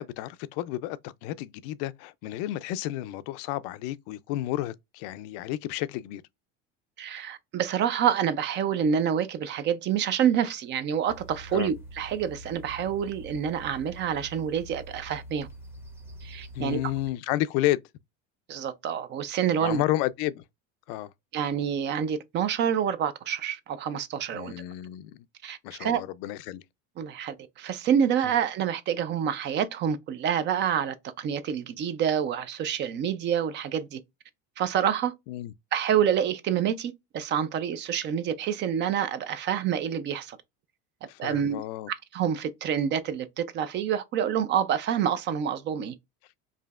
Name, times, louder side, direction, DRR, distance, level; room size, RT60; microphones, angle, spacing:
voice 1, 0.0-6.2 11.5-11.7 16.5-17.8 19.6-20.4 20.9-21.1 24.3-25.1 25.6-26.6 35.3-35.5 41.1-41.9, left 15 dB, 70° left, 0.4 m, -31 dB
voice 2, 7.0-15.5 16.2-16.8 18.5-19.8 21.3-24.5 25.4-26.0 27.0-34.0 34.6-35.1 35.7-40.4 41.2-41.6 42.1-45.9, right 8 dB, 35° right, 0.4 m, -27 dB
sound 1, 11.1-17.1, right 1 dB, 10° right, 0.8 m, -45 dB
4.8 x 2.7 x 2.3 m
cardioid pair, 145°, 31 cm